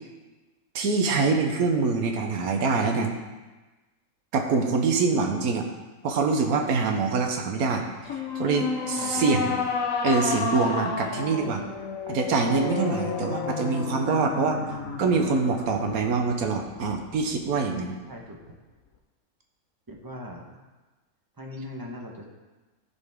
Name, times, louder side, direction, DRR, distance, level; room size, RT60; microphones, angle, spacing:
voice 1, 0.7-3.1 4.3-5.7 6.0-7.8 8.1-9.5 10.0-11.6 12.1-14.6 15.0-17.9, right 4 dB, 85° right, 3 dB, 1.4 m, -25 dB
sound 1, 8.1-17.4, left 5 dB, 70° left, 1.2 m, -31 dB
voice 2, 9.0-9.5 12.9-13.0 18.1-18.6 19.9-20.6 21.4-22.3, left 1 dB, 15° right, -1 dB, 1.1 m, -40 dB
14.0 x 5.4 x 3.6 m, 1.2 s
omnidirectional pair, 1.5 m